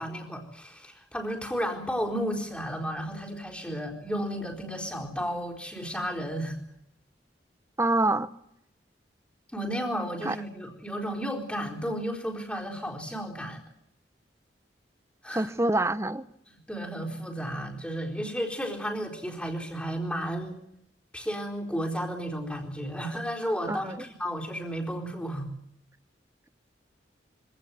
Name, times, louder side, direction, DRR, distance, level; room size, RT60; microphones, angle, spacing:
voice 1, 0.0-6.6 9.5-13.6 15.2-15.5 16.7-20.6 21.1-25.5, equal, 5° left, 4.2 m, -33 dB
voice 2, 7.8-8.3 10.2-10.4 15.3-16.2 23.7-24.0, right 2 dB, 15° right, 0.8 m, -26 dB
25.0 x 17.0 x 9.3 m
head